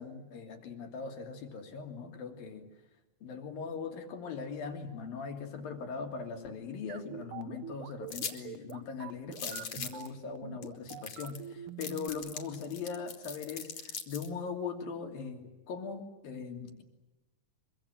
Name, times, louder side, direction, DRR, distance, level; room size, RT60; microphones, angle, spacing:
voice 1, 0.0-2.7 3.2-16.8, left 5 dB, 80° left, 4 dB, 4.7 m, -40 dB
sound 1, 6.9-12.1, right 9 dB, 70° right, 1.3 m, -44 dB
sound 2, 8.1-8.4 8.7-8.8 9.3-10.1 10.6-10.7 10.9-11.5 11.8-14.3, left 6 dB, 50° left, 3.8 m, -40 dB
25.0 x 24.0 x 9.0 m, 1.1 s
omnidirectional pair, 4.1 m